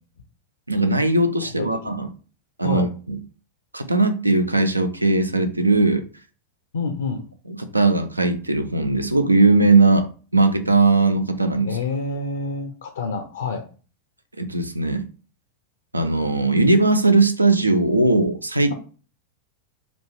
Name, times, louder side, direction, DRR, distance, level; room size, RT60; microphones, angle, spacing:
voice 1, 0.7-2.1 2.6-3.2 3.7-6.0 7.5-11.8 14.4-15.1 15.9-18.7, right 3 dB, 85° right, 9 dB, 0.4 m, -19 dB
voice 2, 1.6-2.1 2.6-2.9 6.7-7.2 11.6-13.6, left 3 dB, 65° left, 4 dB, 0.4 m, -28 dB
3.3 x 2.4 x 3.2 m, 0.38 s
figure-of-eight pair, 90°, 0 cm